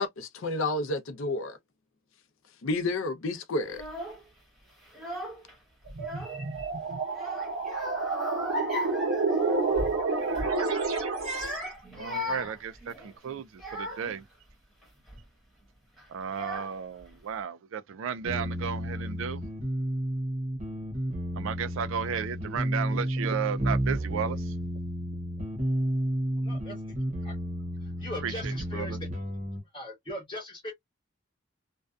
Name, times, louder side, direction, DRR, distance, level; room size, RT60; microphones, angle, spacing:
voice 1, 0.0-1.6 2.6-3.8, left 2 dB, 65° left, 0.5 m, -30 dB
Child speech kid speaking / Crying sobbing, 3.7-4.2 4.9-5.5 5.8-6.7 7.1-10.0 10.3-10.6 11.1-14.2 14.8-15.2 16.0-16.1 16.3-17.0, left 1 dB, ahead, 0.9 m, -37 dB
sound 1, 5.9-11.6, right 3 dB, 80° right, 0.9 m, -29 dB
voice 2, 11.9-14.2 16.1-19.4 21.4-24.5 28.2-29.0, right 7 dB, 65° right, 0.3 m, -34 dB
sound 2, 18.2-29.6, right 1 dB, 35° right, 0.7 m, -31 dB
voice 3, 26.4-26.8 27.2-27.4 27.8-29.0 29.7-30.7, left 1 dB, 25° left, 0.5 m, -39 dB
2.5 x 2.2 x 2.3 m
head